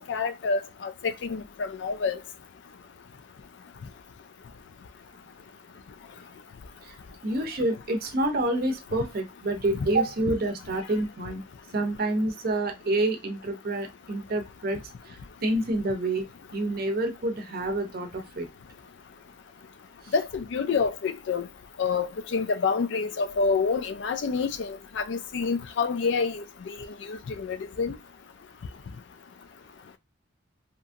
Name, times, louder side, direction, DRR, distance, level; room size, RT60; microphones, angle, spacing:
voice 1, 0.1-2.2 20.1-21.5 21.8-26.8 27.1-27.9, left 5 dB, 65° left, 0.4 m, -28 dB
voice 2, 7.2-11.4 11.7-16.3 16.5-18.5 20.0-20.1, right 1 dB, 50° right, 0.6 m, -28 dB
2.9 x 2.5 x 2.4 m
head